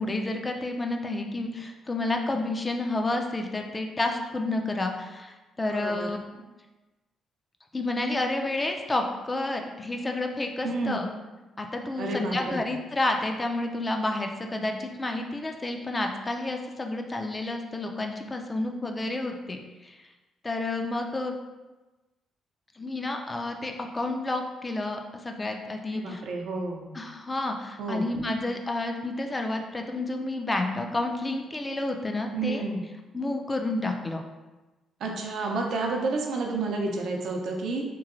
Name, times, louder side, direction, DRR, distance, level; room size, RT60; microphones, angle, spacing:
voice 1, 0.0-6.4 7.7-11.1 11.6-20.1 20.4-21.3 22.8-26.2 26.9-32.6 33.1-34.2, left 2 dB, 20° left, 3 dB, 0.3 m, -30 dB
voice 2, 5.6-6.1 10.6-11.0 12.0-12.6 25.9-26.9 27.8-28.1 32.3-32.8 35.0-37.8, right 3 dB, 70° right, 0 dB, 0.5 m, -30 dB
3.0 x 2.7 x 2.5 m, 1.1 s
cardioid pair, 90°, 0 cm